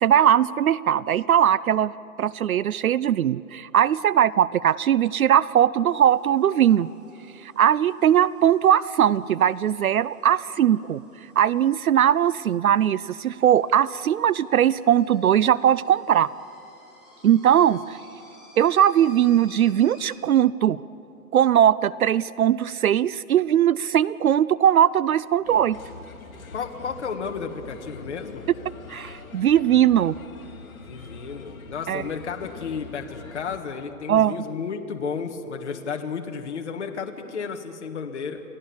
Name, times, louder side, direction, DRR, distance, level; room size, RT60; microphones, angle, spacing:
voice 1, 0.0-1.9 2.2-6.9 7.4-11.0 11.4-16.3 17.2-18.0 18.6-20.8 21.3-25.8 28.9-30.2 31.9-32.0 34.1-34.3, right 10 dB, 70° right, 20 dB, 0.5 m, -20 dB
sound 1, 5.8-20.2, left 1 dB, ahead, 1.3 m, -55 dB
Bird, 25.4-33.6, left 4 dB, 65° left, 2.8 m, -43 dB
voice 2, 26.5-28.5 30.8-38.4, left 6 dB, 50° left, 4 dB, 1.7 m, -32 dB
28.5 x 17.5 x 7.2 m, 2.9 s
hypercardioid pair, 170°, 45 cm